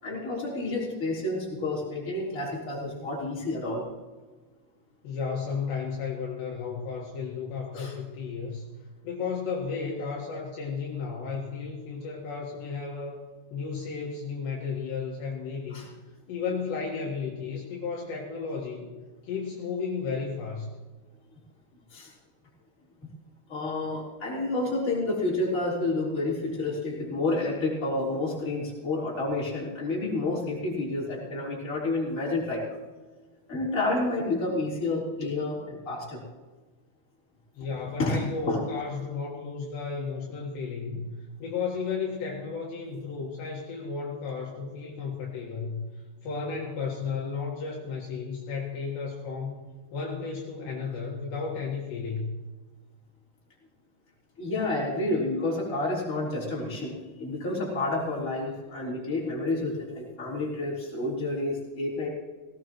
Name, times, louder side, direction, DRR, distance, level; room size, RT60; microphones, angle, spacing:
voice 1, 0.0-3.8 7.7-7.9 15.7-15.9 21.9-22.1 23.5-32.6 33.5-36.2 38.0-38.8 54.4-62.1, left 2 dB, 20° left, -5 dB, 3.7 m, -29 dB
voice 2, 5.0-8.6 9.0-13.2 13.5-15.9 16.3-19.0 19.2-20.7 37.6-45.8 46.2-49.6 49.9-52.3, left 5 dB, 65° left, -2 dB, 3.5 m, -33 dB
18.0 x 17.5 x 3.1 m, 1.3 s
omnidirectional pair, 5.7 m